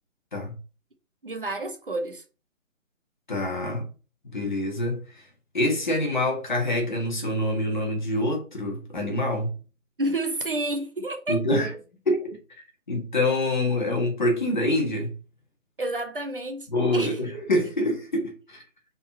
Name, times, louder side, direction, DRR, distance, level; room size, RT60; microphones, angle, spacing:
voice 1, 1.2-2.2 10.0-11.4 15.8-17.2, right 1 dB, 40° right, 0.9 m, -30 dB
voice 2, 3.3-3.9 4.2-5.2 5.5-9.5 11.3-11.7 12.1-12.4 12.9-15.1 16.7-18.6, left 1 dB, 35° left, 1.8 m, -26 dB
5.1 x 4.3 x 4.3 m
hypercardioid pair, 175°, 40 cm